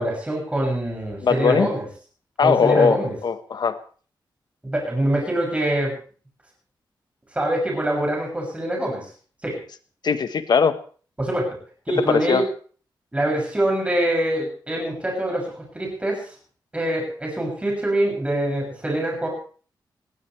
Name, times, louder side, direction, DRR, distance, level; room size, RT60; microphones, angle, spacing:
voice 1, 0.0-1.9 2.4-3.1 4.6-5.9 7.3-9.1 9.4-9.6 11.2-11.5 11.9-12.5 13.1-16.3 16.7-19.3, right 1 dB, 15° right, -1 dB, 7.4 m, -24 dB
voice 2, 1.2-1.7 2.4-3.8 10.0-10.8 12.0-12.5, left 6 dB, 65° left, 11 dB, 1.3 m, -20 dB
20.5 x 16.5 x 3.4 m, 0.42 s
wide cardioid pair, 100°, 8 cm